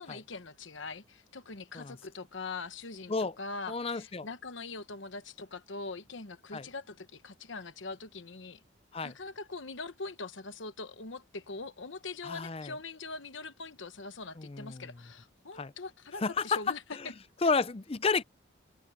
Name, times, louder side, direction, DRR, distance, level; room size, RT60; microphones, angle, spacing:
voice 1, 0.0-8.6 9.0-17.1, left 3 dB, 65° left, 1.1 m, -42 dB
voice 2, 3.7-4.3 6.5-6.6 8.9-9.1 12.2-12.7 14.4-14.9 15.6-15.7 16.2-16.6 17.0-17.1 17.4-18.2, left 4 dB, 30° left, 0.5 m, -31 dB
head